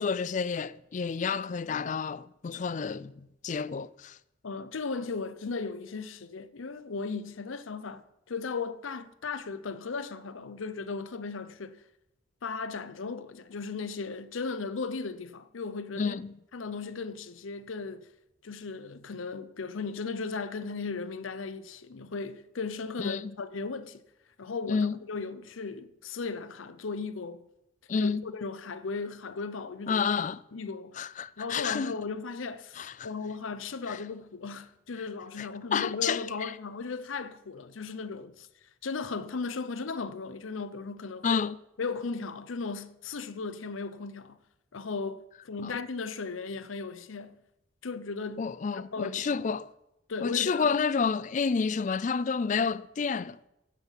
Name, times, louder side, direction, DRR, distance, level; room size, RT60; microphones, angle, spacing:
voice 1, 0.0-4.2 16.0-16.3 23.0-23.3 24.7-25.0 27.9-28.2 29.9-30.4 31.0-32.0 32.8-33.1 33.9-34.0 35.4-36.5 41.2-41.6 45.6-45.8 48.4-49.7 50.2-53.5, left 5 dB, 40° left, 0.3 m, -30 dB
voice 2, 4.4-11.8 12.4-16.2 16.5-18.1 18.4-24.0 24.4-27.4 28.0-30.0 30.5-31.1 31.4-38.5 38.8-41.4 41.8-44.4 44.7-47.4 47.8-49.4 50.1-50.8, left 4 dB, 85° left, 0.7 m, -36 dB
15.0 x 5.9 x 7.2 m
head